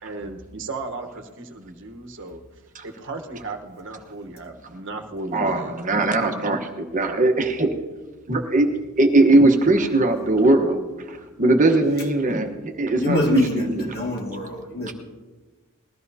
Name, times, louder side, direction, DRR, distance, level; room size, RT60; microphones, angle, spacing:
voice 1, 0.0-2.4 2.8-5.7, right 3 dB, 55° right, 1.1 m, -35 dB
voice 2, 5.3-7.7 8.3-8.7 9.0-10.8 11.1-13.9 14.9-15.0, right 2 dB, 35° right, 1.1 m, -20 dB
voice 3, 13.0-14.9, left 2 dB, 45° left, 2.0 m, -25 dB
20.5 x 14.0 x 2.8 m
head